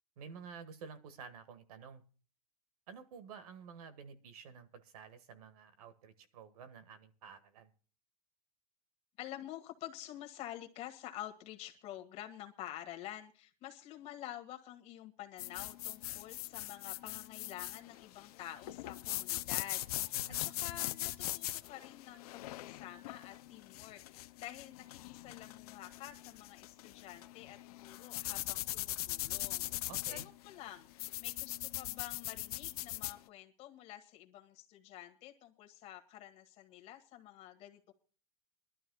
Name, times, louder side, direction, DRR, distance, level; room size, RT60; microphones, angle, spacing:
voice 1, 0.2-2.0 2.9-7.7 20.1-20.5 29.9-30.3, right 6 dB, 90° right, 12 dB, 1.7 m, -51 dB
voice 2, 9.2-37.9, left 13 dB, 35° left, 5 dB, 1.8 m, -49 dB
sound 1, 15.4-33.2, left 16 dB, 85° left, 0.6 m, -41 dB
23.5 x 12.5 x 2.3 m, 0.38 s
supercardioid pair, 165°, 19 cm